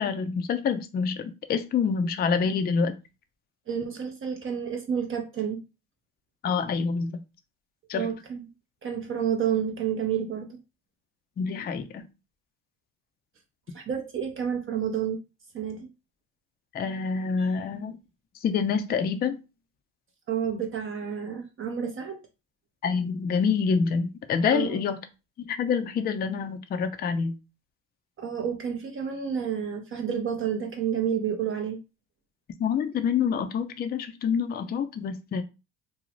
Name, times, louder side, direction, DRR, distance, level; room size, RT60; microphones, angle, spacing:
voice 1, 0.0-3.0 6.4-7.1 7.9-8.1 11.4-12.1 16.7-18.0 18.4-19.4 22.8-25.0 25.4-27.3 32.6-35.4, left 6 dB, 25° left, 0.4 m, -27 dB
voice 2, 3.7-5.6 7.9-8.5 8.8-10.6 13.7-15.2 15.5-15.9 17.4-17.5 20.3-22.2 24.5-24.8 28.2-31.8, right 8 dB, 35° right, 0.5 m, -30 dB
2.6 x 2.0 x 3.0 m
hypercardioid pair, 70°, 39 cm